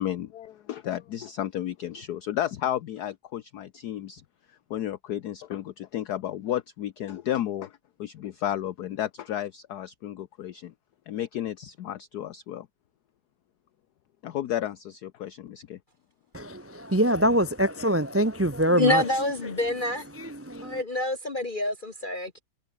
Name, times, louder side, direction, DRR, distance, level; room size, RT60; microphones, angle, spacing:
voice 1, 0.0-4.2 4.7-10.7 11.1-12.7 14.2-15.8, left 11 dB, 60° left, 1.2 m, -32 dB
voice 2, 16.3-19.0 20.2-20.8, equal, 15° right, 0.4 m, -24 dB
voice 3, 18.8-20.0 20.6-22.4, left 1 dB, 30° left, 1.0 m, -27 dB
omnidirectional pair, 2.2 m